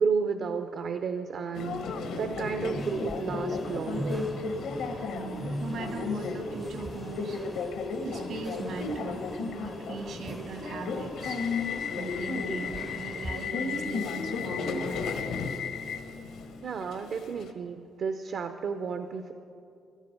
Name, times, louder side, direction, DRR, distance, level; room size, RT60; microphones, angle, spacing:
voice 1, 0.0-4.2 16.6-19.3, right 5 dB, 60° right, 8 dB, 0.6 m, -32 dB
Subway metro underground, 1.5-17.5, left 4 dB, 85° left, 1.2 m, -34 dB
sound 1, 2.7-13.5, equal, 5° right, 0.4 m, -40 dB
voice 2, 5.1-11.4 11.9-15.0, right 3 dB, 80° right, 4 dB, 2.2 m, -39 dB
17.5 x 11.5 x 5.2 m, 2.7 s
cardioid pair, 90°, 0 cm